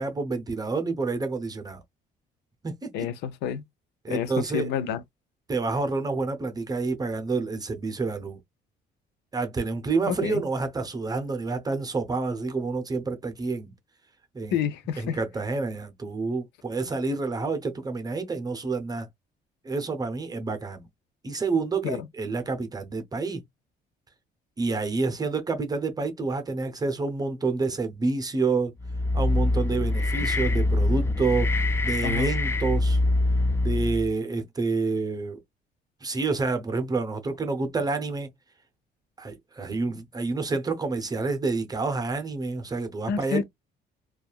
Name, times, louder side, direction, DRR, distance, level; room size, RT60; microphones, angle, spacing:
voice 1, 0.0-1.8 2.6-2.9 4.0-4.7 5.5-8.4 9.3-13.7 14.3-14.6 15.0-19.1 19.6-20.8 21.2-23.4 24.6-28.7 29.1-31.5 31.8-33.0 33.6-35.4 36.0-38.3 39.2-43.4, right 3 dB, 20° right, 0.7 m, -28 dB
voice 2, 2.9-3.6 4.1-5.0 10.1-10.4 14.5-15.2 21.8-22.1 30.2-30.3 32.0-32.3 43.1-43.4, left 8 dB, 85° left, 0.6 m, -29 dB
sound 1, 28.8-34.1, left 2 dB, 15° left, 0.4 m, -24 dB
2.7 x 2.3 x 2.3 m
cardioid pair, 110°, 17 cm